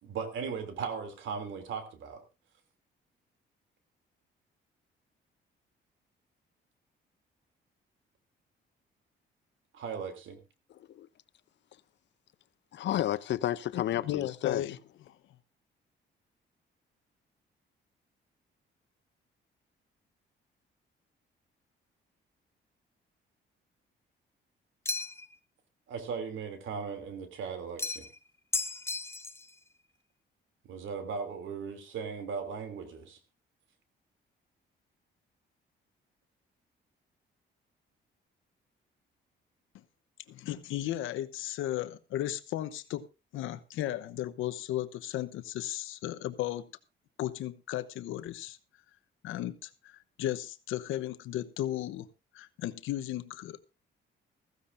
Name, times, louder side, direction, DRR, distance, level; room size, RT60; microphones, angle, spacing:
voice 1, 0.0-2.2 9.7-10.4 25.9-28.1 30.6-33.2, right 6 dB, 75° right, 2.9 m, -37 dB
voice 2, 12.7-14.7, left 12 dB, 65° left, 0.7 m, -31 dB
voice 3, 13.7-14.8 39.7-39.8 40.3-43.1 43.3-46.7 47.2-48.6 49.2-52.1 52.3-53.6, left 13 dB, 90° left, 0.9 m, -35 dB
sound 1, 24.8-25.3 27.8-28.2 28.5-29.5, left 3 dB, 15° left, 0.6 m, -34 dB
15.5 x 15.0 x 2.6 m
cardioid pair, 90°, 20 cm